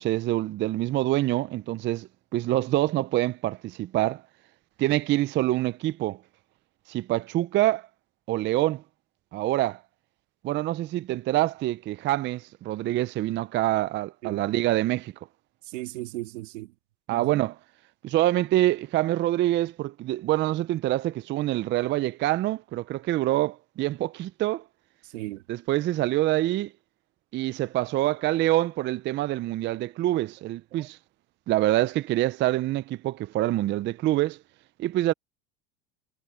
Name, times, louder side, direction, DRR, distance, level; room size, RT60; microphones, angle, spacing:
voice 1, 0.0-4.2 4.8-6.2 6.9-7.9 8.3-8.8 9.3-9.8 10.4-15.1 17.1-17.6 18.0-24.6 25.5-26.7 27.3-31.0 31.5-34.4 34.8-35.1, right 15 dB, 30° right, 0.4 m, -26 dB
voice 2, 15.7-16.7 17.1-17.4 25.0-25.4 30.8-30.9, right 18 dB, 85° right, 2.5 m, -36 dB
supercardioid pair, 115°, 36 cm